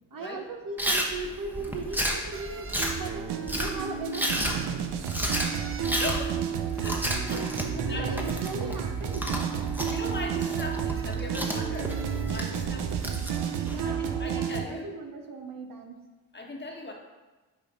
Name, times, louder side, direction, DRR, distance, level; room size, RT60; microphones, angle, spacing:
voice 1, 0.1-4.5 7.7-9.4 13.6-16.0, right 3 dB, 55° right, 3 dB, 1.0 m, -38 dB
Chewing mastication, 0.8-13.8, equal, 5° right, 1.0 m, -33 dB
sound 1, 2.3-3.0 4.3-4.8 5.4-6.0 6.7-7.5 8.1-9.0 9.4-10.0 10.9-11.6 11.9-12.6, right 5 dB, 30° right, 0.7 m, -47 dB
sound 2, 2.8-14.6, right 7 dB, 75° right, 0.7 m, -31 dB
voice 2, 5.9-6.4 6.7-8.2 9.9-13.1 13.8-14.9 16.3-16.9, left 2 dB, 25° left, 1 dB, 1.3 m, -39 dB
6.1 x 4.2 x 4.9 m, 1.2 s
supercardioid pair, 55°, 40 cm